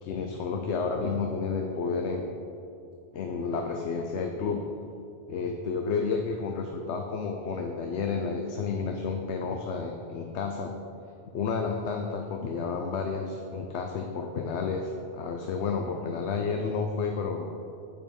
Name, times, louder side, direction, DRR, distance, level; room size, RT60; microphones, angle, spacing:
voice 1, 0.0-2.3 3.1-4.6 5.3-10.7 11.3-17.5, left 5 dB, 80° left, 3 dB, 1.0 m, -31 dB
8.4 x 5.4 x 6.9 m, 2.6 s
omnidirectional pair, 1.1 m